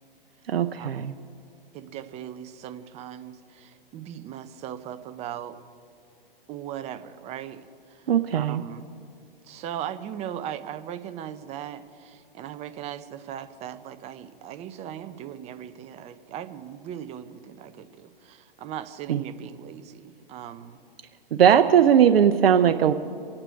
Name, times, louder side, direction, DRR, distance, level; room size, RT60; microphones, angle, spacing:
voice 1, 0.5-1.1 8.1-8.6 19.1-19.2 21.3-22.9, right 8 dB, 80° right, 8 dB, 0.7 m, -19 dB
voice 2, 1.7-5.6 6.5-8.9 9.4-20.8, right 10 dB, 20° right, 11 dB, 0.7 m, -38 dB
24.0 x 8.9 x 4.6 m, 2.5 s
hypercardioid pair, 130°, 29 cm